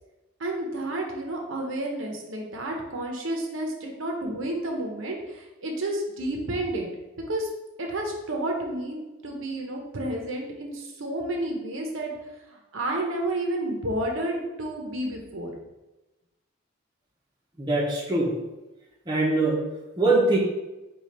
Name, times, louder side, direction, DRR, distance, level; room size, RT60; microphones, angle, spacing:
voice 1, 0.4-6.9 7.3-7.5 7.8-12.1 12.5-15.5, right 1 dB, 70° right, 1 dB, 0.8 m, -31 dB
voice 2, 17.6-18.4 19.1-19.6 20.0-20.4, right 2 dB, 20° right, -4 dB, 0.7 m, -22 dB
5.0 x 2.4 x 4.2 m, 1.0 s
head